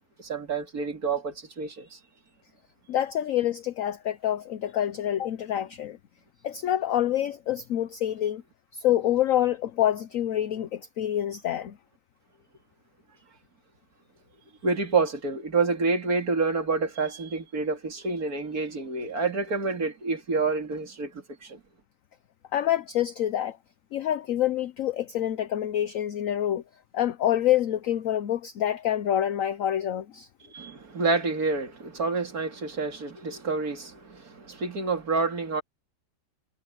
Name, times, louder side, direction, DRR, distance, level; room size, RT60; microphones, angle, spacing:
voice 1, 0.2-2.0 14.6-21.6 30.4-35.6, right 4 dB, 55° right, 3.2 m, -28 dB
voice 2, 2.9-6.0 6.4-8.4 8.7-11.8 22.5-23.6 23.9-26.6 26.9-30.3, left 11 dB, 60° left, 1.0 m, -27 dB
omnidirectional pair, 1.8 m